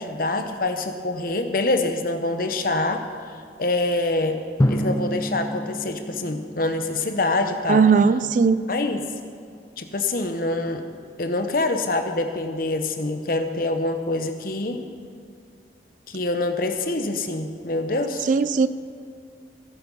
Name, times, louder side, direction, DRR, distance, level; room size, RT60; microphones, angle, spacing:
voice 1, 0.0-3.0 3.6-4.4 4.7-7.8 8.7-9.1 9.8-10.8 11.2-14.8 16.1-18.3, left 2 dB, 50° left, 0.9 m, -25 dB
Drum, 4.6-7.2, equal, 15° left, 0.5 m, -27 dB
voice 2, 7.7-8.6 18.3-18.7, right 5 dB, 45° right, 0.3 m, -18 dB
16.0 x 9.5 x 5.5 m
head